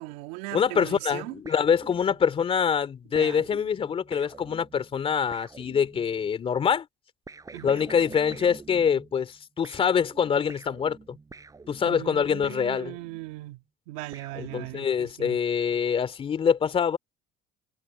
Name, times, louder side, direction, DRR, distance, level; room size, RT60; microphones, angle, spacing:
voice 1, 0.0-1.4 3.1-3.4 7.5-7.8 11.8-15.4, right 20 dB, 85° right, 2.3 m, -39 dB
voice 2, 0.5-6.9 7.6-11.2 11.7-12.9 14.4-17.0, left 7 dB, 35° left, 3.1 m, -25 dB
sound 1, 1.4-2.4 3.1-6.3 7.3-9.4 9.6-13.4 14.1-15.1, right 4 dB, 20° right, 8.0 m, -47 dB
supercardioid pair, 100°, 16 cm